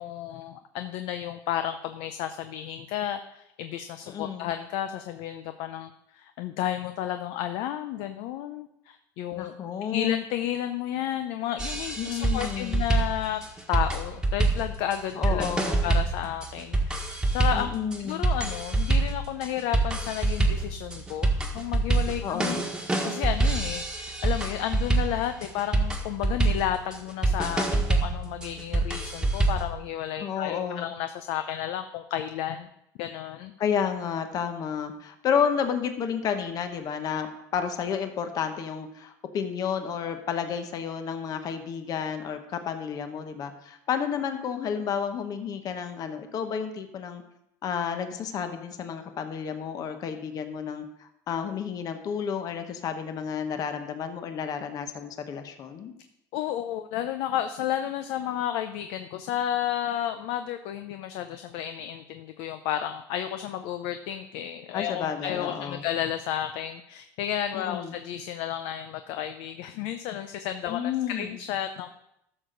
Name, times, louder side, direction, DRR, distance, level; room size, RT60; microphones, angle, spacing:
voice 1, 0.0-9.5 9.9-13.4 13.7-17.7 18.0-22.6 23.0-32.7 33.0-33.5 56.3-71.9, left 11 dB, 70° left, 8 dB, 0.6 m, -32 dB
voice 2, 4.1-4.5 9.3-10.1 12.0-12.8 15.1-15.8 17.5-18.2 22.2-22.6 30.2-30.9 33.6-47.2 47.6-55.9 64.7-65.8 67.5-68.0 70.7-71.4, left 7 dB, 45° left, 7 dB, 1.0 m, -31 dB
sound 1, 11.6-29.7, right 2 dB, 10° right, 1.4 m, -26 dB
13.0 x 6.7 x 3.9 m, 0.80 s
supercardioid pair, 125°, 9 cm